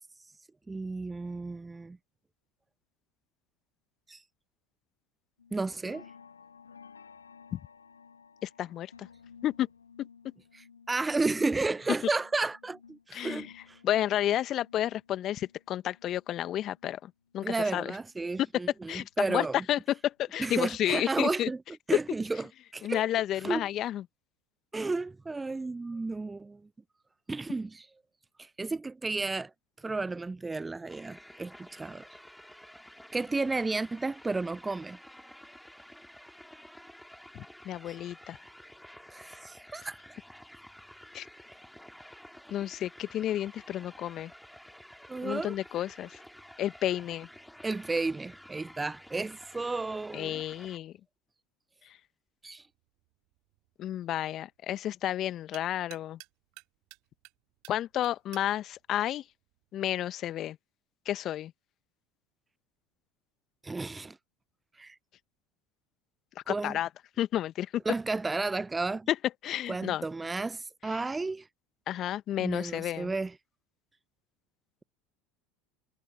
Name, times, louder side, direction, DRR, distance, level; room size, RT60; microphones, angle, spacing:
voice 1, 0.7-2.0 4.1-4.2 5.5-6.0 10.5-13.8 17.4-19.6 20.4-21.6 21.9-22.4 22.7-23.6 24.7-26.6 27.3-27.9 28.4-29.5 29.8-32.1 33.1-35.0 37.9-38.0 39.1-40.0 45.1-45.5 47.6-50.4 52.4-52.6 63.6-64.2 64.8-65.0 66.5-66.8 67.9-69.1 69.7-71.5 72.4-73.3, right 3 dB, 15° right, 0.3 m, -32 dB
sound 1, 5.4-17.5 17.9-19.5 19.9-20.2 20.5-20.6, left 6 dB, 85° left, 2.7 m, -56 dB
voice 2, 8.4-9.1 9.4-9.7 10.0-10.1 13.1-17.9 18.5-18.6 18.9-21.5 22.8-24.0 37.3-38.4 41.1-41.3 42.5-44.3 45.2-46.2 46.6-47.3 50.1-50.9 53.8-56.2 57.7-59.2 59.7-60.6 61.0-61.5 66.5-66.9 67.2-67.7 69.1-69.2 69.4-70.0 70.9-71.0 71.9-73.1, left 12 dB, 45° left, 1.4 m, -31 dB
sound 2, 30.9-50.8, equal, ahead, 3.8 m, -51 dB
sound 3, 52.5-60.1, right 26 dB, 60° right, 3.1 m, -57 dB
hypercardioid pair, 75°, 0 cm